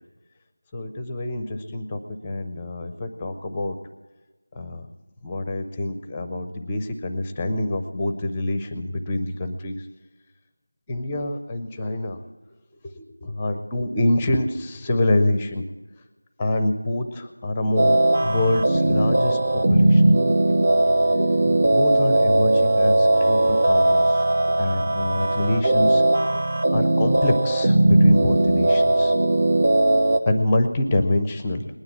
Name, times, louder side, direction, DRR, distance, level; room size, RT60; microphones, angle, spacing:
voice 1, 0.7-3.7 4.5-4.8 5.2-9.9 10.9-12.2 12.9-15.6 16.4-21.2 21.5-24.3 24.6-26.0 26.7-29.1 30.3-31.7, left 1 dB, 10° left, 9 dB, 0.6 m, -26 dB
sound 1, 17.8-30.2, right 1 dB, 25° right, 0.7 m, -19 dB
20.0 x 9.5 x 7.2 m, 1.1 s
figure-of-eight pair, 175°, 0 cm